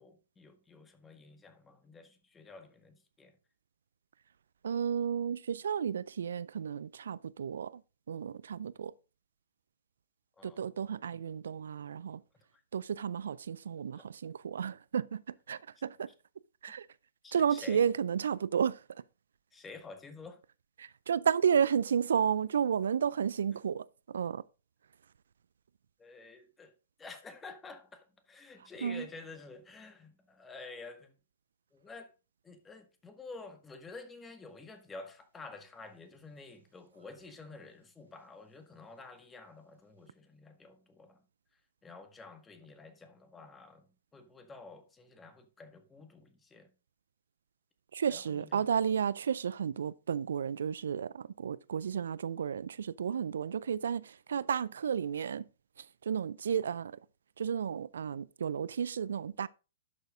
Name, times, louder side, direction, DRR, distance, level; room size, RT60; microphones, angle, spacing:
voice 1, 0.0-3.4 10.4-10.9 12.3-12.6 14.0-14.1 17.2-17.9 19.5-20.4 21.6-21.7 26.0-26.7 27.0-31.2 31.7-32.1 32.4-41.3 41.5-46.8 48.1-48.7, left 3 dB, 15° left, 1.7 m, -50 dB
voice 2, 4.6-7.8 8.1-8.9 10.4-12.2 12.7-16.1 16.6-16.9 17.3-19.0 20.8-24.4 28.8-29.1 47.9-55.5 55.8-57.0 57.4-59.5, right 7 dB, 70° right, 0.4 m, -32 dB
11.5 x 6.5 x 3.7 m
hypercardioid pair, 115°, 0 cm